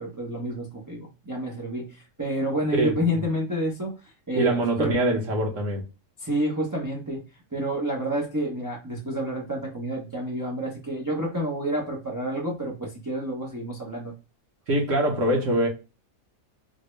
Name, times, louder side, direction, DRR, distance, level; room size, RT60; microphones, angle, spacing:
voice 1, 0.0-3.9 4.3-4.9 6.2-7.2 7.5-14.1, right 1 dB, 25° right, 0.4 m, -29 dB
voice 2, 2.7-3.2 4.3-5.8 14.7-15.7, right 1 dB, 55° right, 1.2 m, -24 dB
4.3 x 2.1 x 3.1 m
omnidirectional pair, 1.7 m